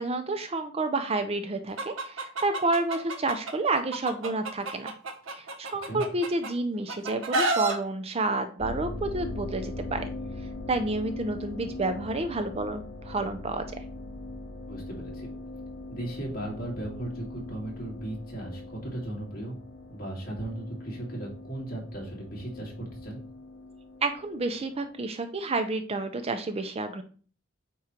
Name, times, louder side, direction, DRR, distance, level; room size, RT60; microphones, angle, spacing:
voice 1, 0.0-4.9 5.3-10.0 10.7-13.7 24.0-27.0, right 2 dB, 30° right, 8 dB, 0.5 m, -29 dB
Chicken rooster, 1.8-3.5 3.9-6.5 6.9-7.7, right 2 dB, 70° right, 1.0 m, -29 dB
sound 1, 8.6-25.0, left 2 dB, 65° left, 0.8 m, -41 dB
voice 2, 14.7-15.3 15.9-19.6 19.9-23.2, right 1 dB, 45° left, -2 dB, 2.4 m, -36 dB
8.6 x 3.1 x 4.4 m, 0.42 s
head